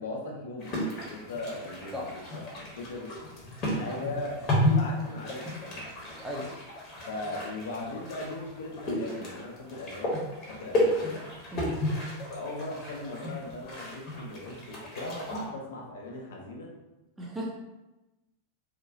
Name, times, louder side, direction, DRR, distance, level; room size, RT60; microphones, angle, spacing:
voice 1, 0.0-2.4 2.7-3.2 3.6-5.9 7.1-11.3 12.3-16.7, left 2 dB, 60° left, -1 dB, 0.6 m, -39 dB
sound 1, 0.6-15.5, left 1 dB, 35° left, 0.9 m, -33 dB
voice 2, 17.2-17.5, equal, 10° right, -3 dB, 0.6 m, -35 dB
2.8 x 2.3 x 2.6 m, 1.0 s
figure-of-eight pair, 90°, 0 cm